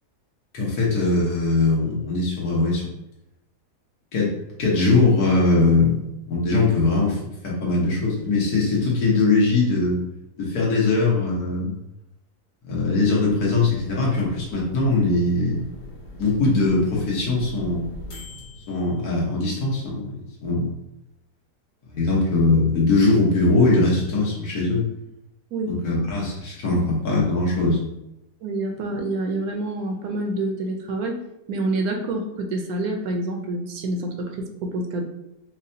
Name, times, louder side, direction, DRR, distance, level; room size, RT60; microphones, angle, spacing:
voice 1, 0.5-2.9 4.1-4.3 4.6-10.0 10.4-11.7 12.6-15.6 16.2-17.9 18.7-20.7 21.9-24.8 25.7-27.8, left 3 dB, 75° left, -4 dB, 1.5 m, -21 dB
sound 1, 13.2-19.7, left 2 dB, 55° left, 0.9 m, -41 dB
voice 2, 28.4-31.2 31.5-35.0, right 2 dB, 75° right, 3 dB, 1.0 m, -27 dB
4.7 x 2.2 x 2.7 m, 0.87 s
omnidirectional pair, 1.7 m